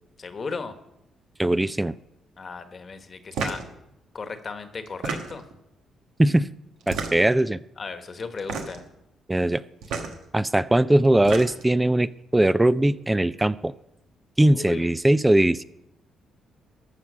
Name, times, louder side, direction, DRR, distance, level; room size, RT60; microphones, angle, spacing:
voice 1, 0.2-0.7 2.4-3.6 4.1-5.4 7.8-8.8 14.5-14.9, left 4 dB, 40° left, 8 dB, 1.2 m, -35 dB
voice 2, 1.4-1.9 6.2-6.5 6.9-7.6 9.3-9.6 10.3-13.7 14.4-15.6, right 1 dB, 10° right, 16 dB, 0.3 m, -20 dB
sound 1, 3.3-3.7 4.9-5.6 6.8-7.4 8.4-8.9 9.8-10.1 11.0-11.7, right 5 dB, 85° right, 1.3 m, -31 dB
14.0 x 5.7 x 6.2 m, 0.86 s
cardioid pair, 90°, 0 cm